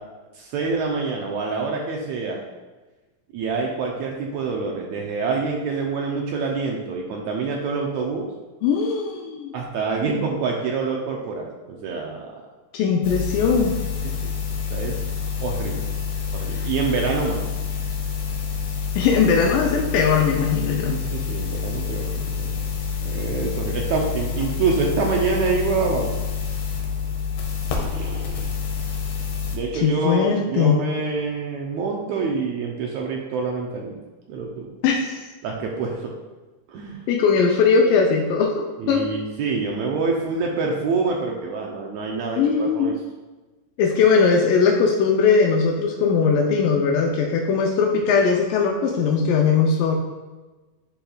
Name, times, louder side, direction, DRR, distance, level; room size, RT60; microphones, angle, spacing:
voice 1, 0.4-2.4 3.3-8.3 9.5-12.4 14.2-14.3 14.7-15.0 15.4-15.8 16.3-17.4 20.9-22.6 23.0-26.2 27.9-28.5 29.5-33.9 34.3-34.7 35.4-36.1 36.7-37.0 38.8-42.9, right 4 dB, 80° right, 0 dB, 1.6 m, -26 dB
voice 2, 8.6-9.5 12.7-13.8 16.6-16.7 19.0-21.0 29.7-30.8 34.8-35.2 37.1-39.1 42.4-43.0 43.8-49.9, left 5 dB, 85° left, 0 dB, 2.2 m, -19 dB
sound 1, 13.0-29.6, left 6 dB, 65° left, 1.9 m, -27 dB
10.5 x 4.4 x 2.3 m, 1.2 s
omnidirectional pair, 3.8 m